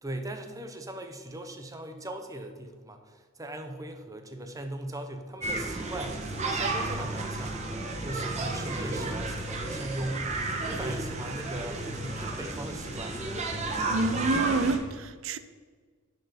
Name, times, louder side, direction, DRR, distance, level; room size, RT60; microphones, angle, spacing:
voice 1, 0.0-7.6 8.0-13.2, right 1 dB, 15° right, 0.7 m, -39 dB
sound 1, 5.4-14.8, right 2 dB, 35° right, 1.1 m, -32 dB
voice 2, 13.9-15.4, right 3 dB, 70° right, 0.5 m, -28 dB
9.9 x 4.6 x 5.0 m
head